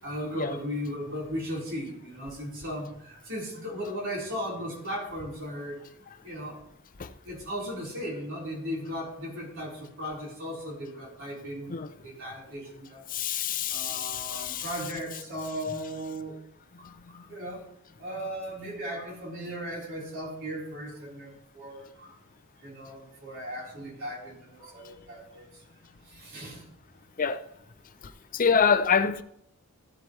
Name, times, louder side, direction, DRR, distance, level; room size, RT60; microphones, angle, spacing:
voice 1, 0.0-5.8 6.2-6.6 7.3-11.8 12.0-13.0 13.7-16.4 16.8-17.6 18.0-22.2 22.6-25.6 26.1-26.7, equal, 60° right, 4.1 m, -37 dB
voice 2, 11.7-12.1 13.1-14.7 16.7-17.2 27.2-27.4 28.0-29.2, left 6 dB, 40° left, 0.6 m, -27 dB
15.0 x 7.8 x 3.2 m
head